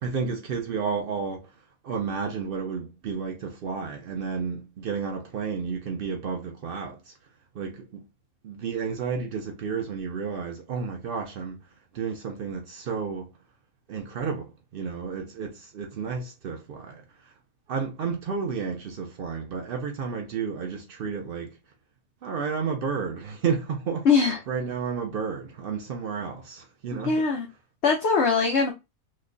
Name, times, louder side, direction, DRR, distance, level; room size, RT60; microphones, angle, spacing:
voice 1, 0.0-1.6 1.8-7.1 7.5-8.1 8.4-11.6 11.9-13.3 13.9-17.3 17.7-21.6 22.2-24.1 24.5-27.3, right 6 dB, 85° right, 0.4 m, -31 dB
voice 2, 24.0-24.4 27.0-27.5 27.8-28.7, left 5 dB, 60° left, 0.8 m, -21 dB
3.0 x 2.1 x 3.7 m
omnidirectional pair, 1.6 m